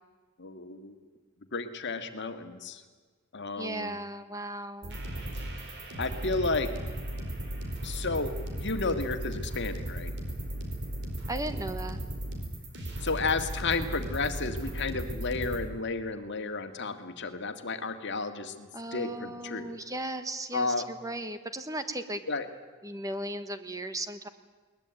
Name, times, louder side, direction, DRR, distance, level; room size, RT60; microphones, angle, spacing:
voice 1, 0.4-0.9 1.5-2.8 3.3-4.0 6.0-6.7 7.8-10.1 13.0-19.7 20.5-20.9 22.3-22.5, left 3 dB, 55° left, 7 dB, 2.0 m, -32 dB
voice 2, 3.6-5.0 11.3-12.0 18.7-22.3 22.8-24.3, right 1 dB, 15° right, 9 dB, 1.3 m, -36 dB
sound 1, 4.8-15.6, right 1 dB, 55° right, 4.9 m, -36 dB
21.5 x 20.0 x 9.1 m, 1.4 s
head